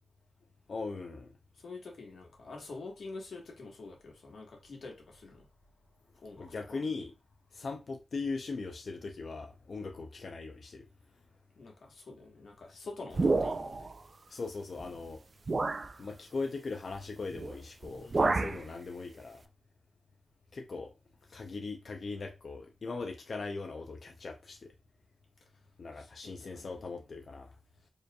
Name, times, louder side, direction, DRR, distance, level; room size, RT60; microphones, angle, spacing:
voice 1, 0.7-1.4 6.4-7.1 7.5-10.9 14.3-15.2 16.0-19.4 20.5-20.9 21.3-24.7 25.8-27.5, left 4 dB, 50° left, 0.5 m, -39 dB
voice 2, 1.6-5.5 6.2-6.8 11.6-13.9 18.0-18.6 26.0-27.0, left 3 dB, 75° left, 1.3 m, -47 dB
sound 1, 13.1-13.9 14.8-14.9 15.5-15.9 17.3-17.6 17.8-18.6, right 3 dB, 35° right, 0.3 m, -29 dB
4.7 x 3.1 x 2.3 m
wide cardioid pair, 165°, 0 cm